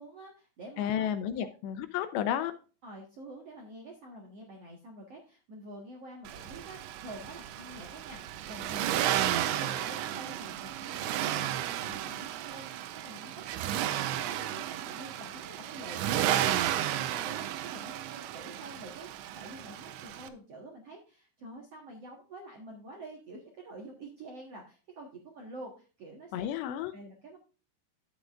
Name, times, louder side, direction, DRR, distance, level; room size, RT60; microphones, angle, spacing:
voice 1, 0.0-1.1 1.4-1.5 2.8-26.5 26.9-27.4, right 2 dB, 65° right, -1 dB, 1.5 m, -47 dB
voice 2, 0.8-2.5 26.3-26.9, left 10 dB, 80° left, 10 dB, 2.7 m, -32 dB
Accelerating revving vroom, 6.2-20.3, right 12 dB, 90° right, 3.0 m, -33 dB
11.5 x 8.3 x 2.5 m, 0.35 s
omnidirectional pair, 5.3 m